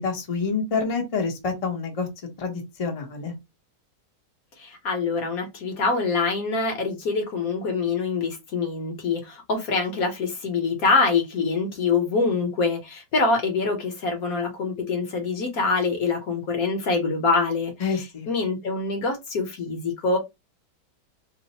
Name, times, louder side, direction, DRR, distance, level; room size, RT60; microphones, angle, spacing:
voice 1, 0.0-2.1 2.4-3.3 17.8-18.3, left 4 dB, 30° left, 0.6 m, -27 dB
voice 2, 4.6-20.2, left 4 dB, 60° left, 1.2 m, -25 dB
3.1 x 2.0 x 4.0 m
omnidirectional pair, 1.9 m